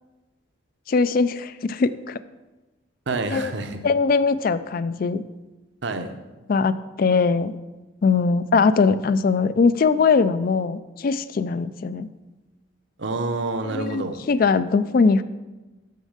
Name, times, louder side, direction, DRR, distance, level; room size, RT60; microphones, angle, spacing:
voice 1, 0.9-2.2 3.3-3.5 3.8-5.2 6.5-7.6 8.0-12.1 13.7-15.2, left 4 dB, 45° left, 15 dB, 0.3 m, -21 dB
voice 2, 3.1-3.9 5.8-6.1 13.0-14.2, right 3 dB, 55° right, 7 dB, 0.7 m, -28 dB
6.5 x 6.4 x 6.5 m, 1.1 s
head